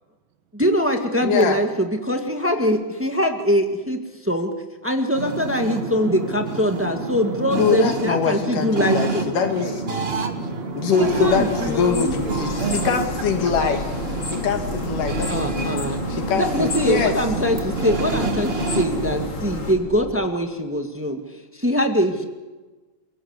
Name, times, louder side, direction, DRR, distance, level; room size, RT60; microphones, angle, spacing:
voice 1, 0.5-4.5 4.8-9.3 11.0-12.1 15.3-22.2, equal, 15° right, 4 dB, 0.4 m, -23 dB
voice 2, 1.2-1.6 7.5-9.7 10.8-13.8 14.3-15.7 16.1-17.1, left 6 dB, 75° left, 5 dB, 3.3 m, -23 dB
sound 1, 5.1-19.3, right 3 dB, 40° right, 0.8 m, -28 dB
voice 3, 9.6-11.9 12.2-12.8, right 8 dB, 75° right, 8 dB, 3.1 m, -38 dB
sound 2, 11.0-19.7, left 3 dB, 45° left, 4.1 m, -32 dB
sound 3, 11.6-20.2, left 1 dB, 5° left, 3.4 m, -38 dB
28.5 x 17.5 x 8.1 m, 1.2 s
omnidirectional pair, 3.8 m